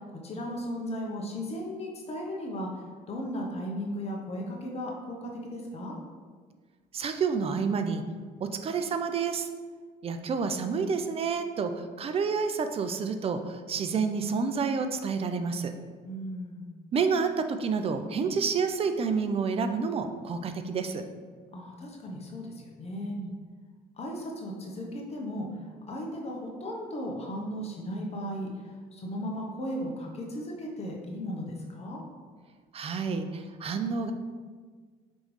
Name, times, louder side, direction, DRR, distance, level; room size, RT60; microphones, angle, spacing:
voice 1, 0.0-6.0 16.0-16.7 21.5-23.2 24.0-25.5 25.9-32.0, equal, 40° left, -1 dB, 0.8 m, -36 dB
voice 2, 6.9-8.0 8.4-9.5 10.0-15.7 16.9-21.0 23.2-23.3 32.7-34.1, right 5 dB, 35° right, 8 dB, 0.4 m, -29 dB
5.1 x 3.1 x 3.2 m, 1.5 s
cardioid pair, 110°, 17 cm